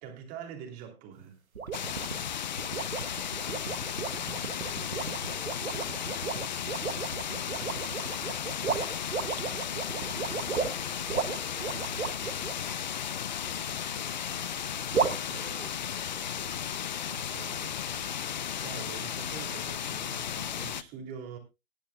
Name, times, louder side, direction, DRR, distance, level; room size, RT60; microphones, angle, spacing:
voice 1, 0.0-1.7 7.3-7.9 15.3-15.8 17.0-21.4, right 7 dB, 20° right, 2.9 m, -46 dB
sound 1, 1.5-12.5 14.9-15.2, right 6 dB, 90° right, 2.1 m, -34 dB
sound 2, 1.7-20.8, left 9 dB, 35° left, 0.5 m, -35 dB
voice 2, 4.2-7.0 7.4-7.5 10.7-11.8 13.3-14.5 15.2-16.4, right 6 dB, 60° right, 3.6 m, -53 dB
18.5 x 11.5 x 2.2 m
hypercardioid pair, 150°, 41 cm